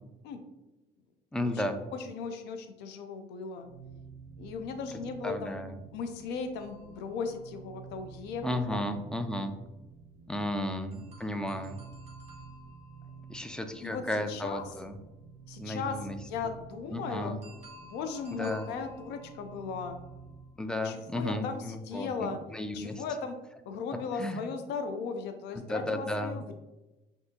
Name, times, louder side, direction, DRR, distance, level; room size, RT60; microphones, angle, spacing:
voice 1, 1.3-1.8 5.2-5.8 8.4-9.5 10.3-11.8 13.3-15.0 15.6-16.2 16.4-16.5 16.9-17.4 18.4-18.7 20.6-22.9 24.2-24.4 25.5-26.5, left 1 dB, 5° left, 7 dB, 0.4 m, -34 dB
voice 2, 1.9-3.7 4.4-5.6 5.9-8.5 8.7-9.0 13.8-14.6 15.5-17.3 17.8-20.0 20.8-22.4 22.7-23.4 23.7-26.5, left 5 dB, 85° left, 7 dB, 0.5 m, -37 dB
sound 1, 3.6-20.6, right 5 dB, 70° right, 0.5 m, -51 dB
sound 2, 6.6-8.3 10.9-14.8 17.4-20.9, left 1 dB, 40° right, 1.1 m, -56 dB
5.8 x 2.7 x 2.8 m, 1.0 s
cardioid pair, 110°, 17 cm